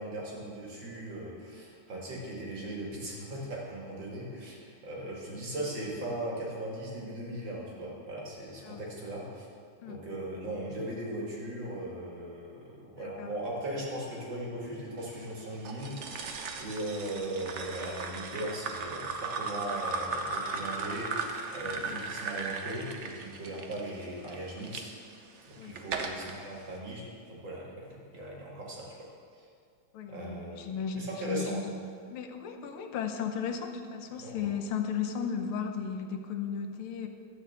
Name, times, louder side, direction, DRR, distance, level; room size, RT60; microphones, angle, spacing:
voice 1, 0.0-9.5 9.9-16.3 16.6-24.8 25.4-29.1 29.3-29.5 30.1-31.6 34.2-34.5, right 1 dB, 60° right, -4 dB, 2.8 m, -38 dB
voice 2, 13.0-13.3 21.9-22.0 25.6-25.7 29.9-31.7 32.1-37.1, left 7 dB, 80° left, 5 dB, 1.6 m, -35 dB
sound 1, 15.6-24.8 25.4-26.3, right 4 dB, 85° right, 0.6 m, -37 dB
12.5 x 4.8 x 7.9 m, 2.3 s
omnidirectional pair, 2.4 m